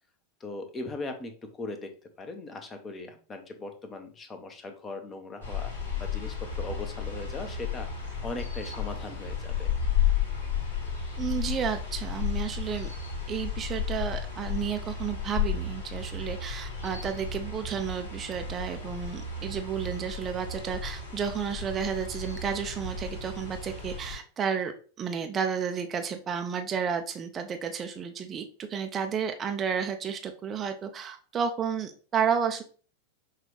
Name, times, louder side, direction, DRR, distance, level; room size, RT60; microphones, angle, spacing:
voice 1, 0.4-1.9 2.2-5.7 6.0-7.9 8.2-9.7, left 2 dB, 20° left, 6 dB, 0.8 m, -39 dB
sound 1, 5.4-24.2, left 7 dB, 65° left, 2.1 m, -33 dB
voice 2, 11.2-12.9 13.3-24.7 25.0-32.6, right 7 dB, 25° right, 6 dB, 0.5 m, -32 dB
5.8 x 2.4 x 3.2 m, 0.41 s
figure-of-eight pair, 90°, 0 cm